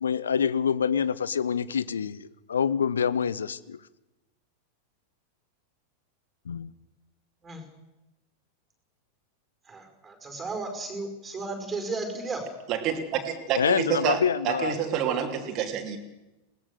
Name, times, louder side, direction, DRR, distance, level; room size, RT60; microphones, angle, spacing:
voice 1, 0.0-3.8 6.5-6.7 13.5-14.8, left 7 dB, 70° left, 18 dB, 0.8 m, -26 dB
voice 2, 9.7-12.4, right 3 dB, 15° right, 5 dB, 5.3 m, -34 dB
voice 3, 12.7-16.0, right 8 dB, 35° right, 3 dB, 3.0 m, -28 dB
21.0 x 18.5 x 6.9 m, 1.0 s
figure-of-eight pair, 90°, 0 cm